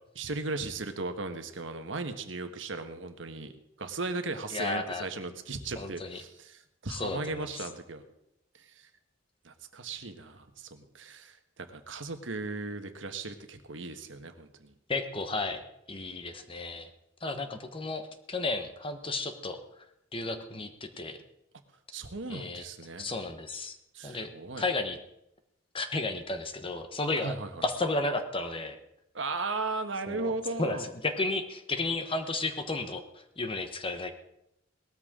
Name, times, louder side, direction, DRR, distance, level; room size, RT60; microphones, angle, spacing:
voice 1, 0.2-3.5 3.8-8.0 8.5-8.9 9.4-14.7 21.9-23.1 23.9-24.6 27.2-27.6 29.1-30.9, right 3 dB, 70° right, 7 dB, 1.4 m, -37 dB
voice 2, 4.5-5.1 5.8-6.2 6.9-7.6 14.9-15.6 15.9-16.9 17.2-19.6 20.1-21.2 22.3-22.6 23.0-23.8 24.0-24.3 24.6-25.0 25.7-27.4 27.6-28.8 30.1-30.3 30.6-34.1, left 2 dB, 30° left, 7 dB, 1.2 m, -33 dB
18.5 x 13.5 x 3.8 m, 0.80 s
head